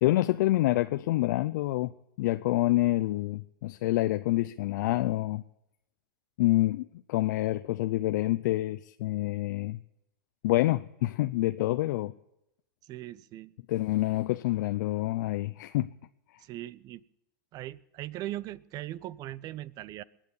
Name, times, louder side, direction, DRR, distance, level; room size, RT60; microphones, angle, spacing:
voice 1, 0.0-5.4 6.4-9.8 10.4-12.1 13.7-15.9 16.3-16.4, left 17 dB, 65° left, 11 dB, 0.5 m, -27 dB
voice 2, 12.8-13.5 16.4-17.0 17.5-20.0, right 14 dB, 35° right, 22 dB, 0.5 m, -39 dB
21.5 x 9.0 x 7.1 m, 0.83 s
hypercardioid pair, 115°, 11 cm